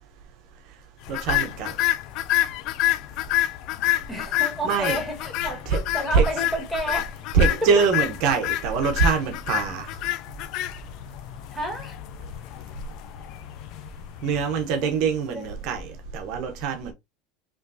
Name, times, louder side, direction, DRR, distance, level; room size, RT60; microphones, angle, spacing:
sound 1, 1.1-15.4, left 15 dB, 60° left, 0.4 m, -29 dB
voice 1, 1.1-1.7 4.6-5.0 5.7-5.8 6.1-6.3 7.3-9.9 14.2-16.9, right 5 dB, 60° right, 1.0 m, -23 dB
voice 2, 4.1-7.2 7.5-7.6 11.5-12.0 14.8-14.9 15.3-15.5, equal, 5° left, 2.2 m, -31 dB
5.0 x 3.1 x 2.7 m
supercardioid pair, 125°, 0 cm